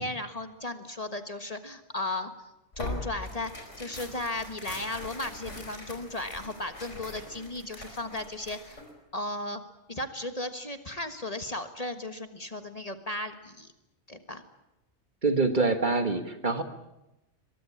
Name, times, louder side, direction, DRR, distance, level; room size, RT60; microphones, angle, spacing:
voice 1, 0.0-2.3 2.8-3.5 3.8-8.8 9.1-9.6 9.9-13.7 14.1-14.4, left 2 dB, 35° left, 8 dB, 1.5 m, -35 dB
Tearing, 2.7-8.9, left 2 dB, 90° left, 5.2 m, -42 dB
voice 2, 15.2-16.6, right 3 dB, 40° right, 8 dB, 1.8 m, -25 dB
23.0 x 22.5 x 8.7 m, 0.91 s
omnidirectional pair, 1.2 m